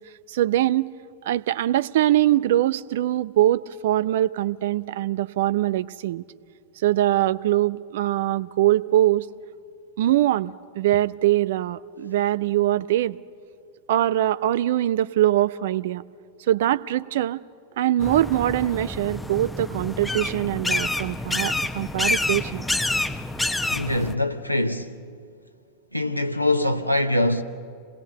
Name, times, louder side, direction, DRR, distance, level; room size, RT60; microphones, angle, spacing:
voice 1, 0.3-0.9 1.2-6.2 6.8-9.3 10.0-13.2 13.9-16.0 16.5-17.4 17.8-22.7, right 13 dB, 55° right, 0.6 m, -22 dB
sound 1, 18.0-24.1, left 2 dB, 5° left, 1.0 m, -28 dB
voice 2, 23.7-25.0 25.9-27.4, left 1 dB, 90° left, 1.2 m, -23 dB
28.5 x 20.0 x 6.7 m
figure-of-eight pair, 90°, 0 cm